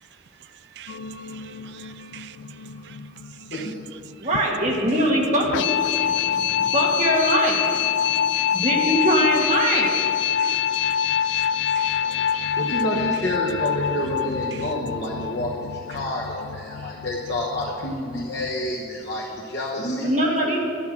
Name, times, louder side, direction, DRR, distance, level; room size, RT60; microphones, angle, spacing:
voice 1, 0.8-1.5 2.1-3.0 3.5-3.7 5.9-6.1 8.0-8.5 10.3-12.6 14.5-14.7, right 11 dB, 60° right, 0.3 m, -44 dB
sound 1, 0.9-18.7, left 9 dB, 75° left, 0.4 m, -26 dB
voice 2, 4.2-10.0 10.9-11.2 16.8-16.9 20.0-20.6, right 1 dB, 40° right, 1.6 m, -23 dB
voice 3, 12.5-20.1 20.4-20.5, left 1 dB, 55° left, 1.1 m, -28 dB
12.0 x 8.2 x 6.0 m
head